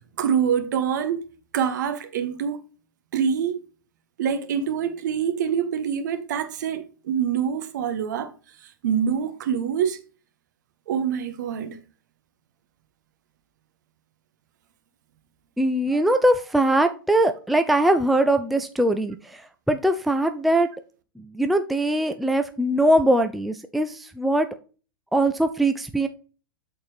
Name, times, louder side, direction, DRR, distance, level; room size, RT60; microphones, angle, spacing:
voice 1, 0.2-1.2 1.5-2.6 3.1-3.6 4.2-8.3 8.6-10.0 10.9-11.8 15.9-16.1, right 8 dB, 55° right, 1.4 m, -25 dB
voice 2, 15.6-19.4 19.7-20.7 21.3-24.5 25.1-26.1, right 1 dB, ahead, 0.4 m, -21 dB
13.0 x 4.4 x 3.4 m
figure-of-eight pair, 105°, 12 cm